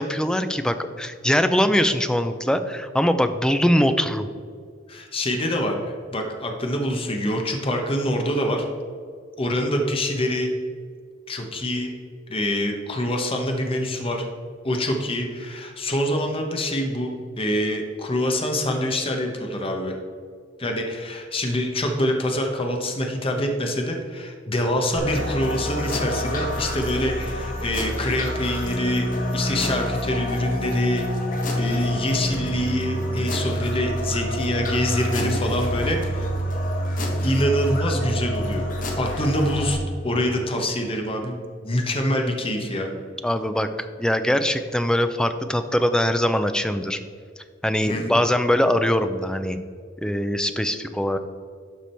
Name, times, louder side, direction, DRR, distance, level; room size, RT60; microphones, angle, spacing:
voice 1, 0.0-4.3 43.2-47.0 47.6-49.6 50.0-51.2, equal, 5° left, 9 dB, 0.4 m, -22 dB
voice 2, 4.9-5.7 6.1-8.7 9.4-10.5 11.3-11.9 12.3-14.3 14.6-17.1 17.4-20.0 20.6-29.1 29.3-31.0 31.6-36.3 37.2-38.7 39.0-42.9 47.9-48.2, left 1 dB, 30° left, 3 dB, 1.0 m, -25 dB
sound 1, 25.0-39.7, equal, 45° left, 1.3 m, -27 dB
12.0 x 4.9 x 4.4 m, 2.1 s
head